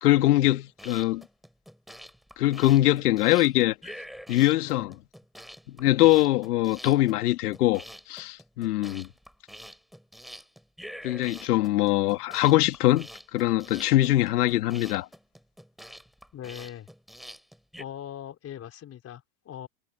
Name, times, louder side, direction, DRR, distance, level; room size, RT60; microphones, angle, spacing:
voice 1, 0.0-1.2 2.4-3.8 4.3-4.9 5.7-9.1 11.0-15.1, left 15 dB, 80° left, 2.3 m, -23 dB
sound 1, 0.7-17.8, equal, ahead, 7.5 m, -46 dB
voice 2, 16.3-16.9 17.8-19.7, left 10 dB, 30° left, 4.6 m, -40 dB
supercardioid pair, 125°, 45 cm